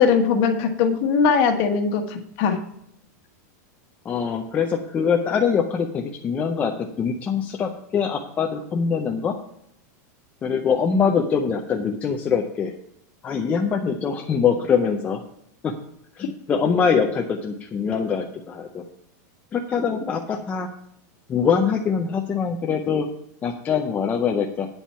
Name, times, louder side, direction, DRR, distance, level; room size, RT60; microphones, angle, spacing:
voice 1, 0.0-2.6, left 6 dB, 40° left, 6 dB, 1.3 m, -20 dB
voice 2, 4.0-6.7 7.0-9.3 10.4-12.7 13.2-15.2 15.6-15.7 16.2-18.8 19.5-20.7 21.3-23.1 23.4-24.7, left 6 dB, 15° left, 2 dB, 0.5 m, -23 dB
8.7 x 7.4 x 5.6 m, 0.74 s
supercardioid pair, 170°, 10 cm